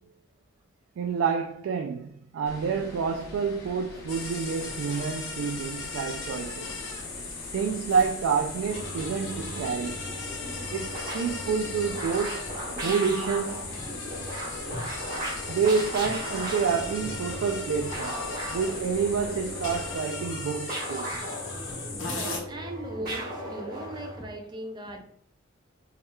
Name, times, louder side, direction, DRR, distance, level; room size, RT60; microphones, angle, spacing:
voice 1, 1.0-6.7 7.2-10.0 10.7-12.4 12.8-13.7 15.5-18.2 18.5-21.1, right 6 dB, 85° right, 0.3 m, -28 dB
sound 1, 2.5-20.0, left 1 dB, 50° left, 1.0 m, -44 dB
sound 2, 4.1-22.4, left 3 dB, 85° left, 1.1 m, -37 dB
sound 3, 8.6-24.3, right 1 dB, 45° right, 1.3 m, -37 dB
voice 2, 13.8-14.9 15.2-15.4 15.8-15.9 21.9-25.0, right 1 dB, 20° right, 0.4 m, -40 dB
4.5 x 3.2 x 2.2 m
head